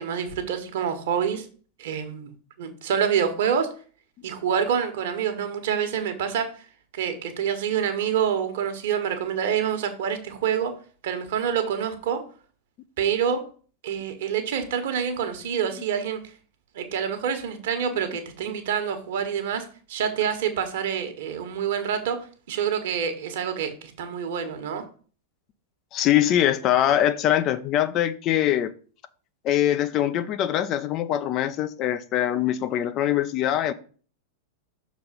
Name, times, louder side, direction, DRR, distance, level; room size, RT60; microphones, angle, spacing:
voice 1, 0.0-1.5 1.8-2.3 2.6-3.7 4.2-6.5 6.9-10.7 11.0-12.2 13.0-13.4 13.8-16.2 16.7-22.2 22.5-24.8, right 8 dB, 55° right, 1.3 m, -27 dB
voice 2, 25.9-28.7 29.4-33.7, left 11 dB, 35° left, 0.5 m, -23 dB
6.4 x 4.1 x 5.6 m
figure-of-eight pair, 90°, 0 cm